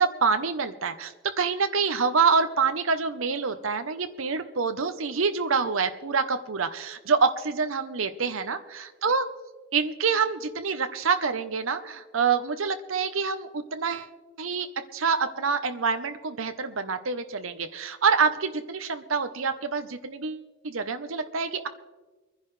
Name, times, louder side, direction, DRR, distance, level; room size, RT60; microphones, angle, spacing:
voice 1, 0.0-9.2 9.7-14.1 14.4-21.7, right 5 dB, 80° right, 9 dB, 0.9 m, -26 dB
24.0 x 10.5 x 3.3 m, 1.2 s
head